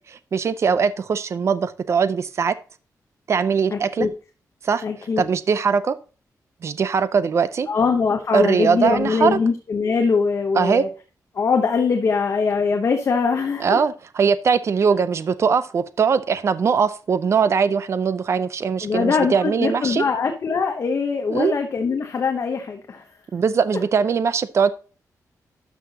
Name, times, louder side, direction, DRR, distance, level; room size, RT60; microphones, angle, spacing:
voice 1, 0.0-2.6 3.3-4.1 4.6-4.8 5.2-6.0 6.6-7.7 8.3-9.4 10.6-10.8 13.6-20.0 21.3-21.6 23.3-24.7, right 6 dB, 45° right, 0.6 m, -21 dB
voice 2, 3.7-4.1 4.8-5.2 7.7-10.9 11.3-13.8 18.8-23.0, left 5 dB, 45° left, 0.9 m, -22 dB
12.0 x 5.7 x 2.8 m
wide cardioid pair, 170°, 6 cm